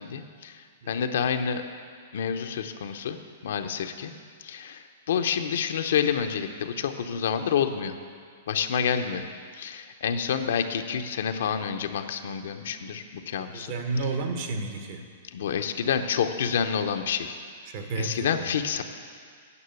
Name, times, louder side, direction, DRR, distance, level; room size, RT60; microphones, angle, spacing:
voice 1, 0.0-1.6 2.1-3.2 3.4-4.1 4.4-7.9 8.5-9.3 9.5-13.7 15.3-17.4 18.0-18.8, left 7 dB, 75° left, 7 dB, 0.7 m, -28 dB
voice 2, 0.8-1.1 13.5-15.0 17.7-18.6, right 3 dB, 50° right, 5 dB, 1.2 m, -31 dB
9.8 x 6.1 x 8.2 m, 2.1 s
hypercardioid pair, 150°, 0 cm